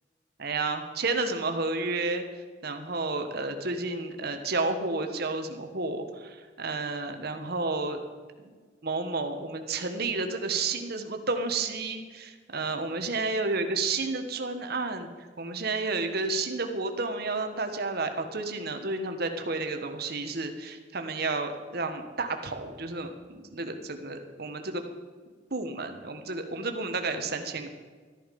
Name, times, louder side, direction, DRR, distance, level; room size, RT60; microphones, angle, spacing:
voice 1, 0.4-2.3 2.6-8.0 8.8-15.1 15.4-24.8 25.5-27.7, right 3 dB, 55° right, 6 dB, 1.3 m, -31 dB
13.5 x 10.5 x 5.3 m, 1.5 s
head